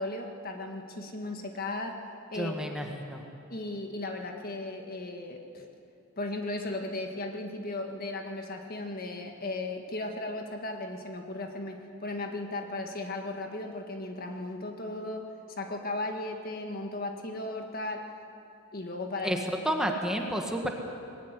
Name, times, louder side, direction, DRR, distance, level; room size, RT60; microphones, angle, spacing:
voice 1, 0.0-2.0 2.3-2.5 3.5-5.7 6.2-18.1 18.7-19.4, left 2 dB, 50° left, 3 dB, 1.8 m, -36 dB
voice 2, 2.3-3.2 19.2-19.4 19.6-20.7, equal, 5° right, 2 dB, 1.7 m, -30 dB
20.0 x 18.0 x 8.3 m, 2.6 s
head